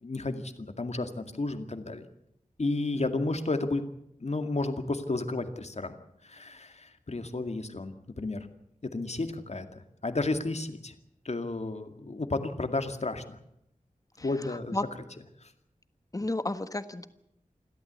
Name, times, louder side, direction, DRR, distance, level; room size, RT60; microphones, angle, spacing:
voice 1, 0.0-2.1 2.6-3.8 4.2-6.0 6.2-8.5 8.8-10.9 11.2-13.4 14.2-14.8 15.4-15.5, left 2 dB, 55° left, 8 dB, 2.1 m, -32 dB
voice 2, 14.2-14.8 16.1-17.1, left 2 dB, 25° left, 11 dB, 1.4 m, -33 dB
28.5 x 13.0 x 8.2 m, 0.78 s
wide cardioid pair, 75°, 14 cm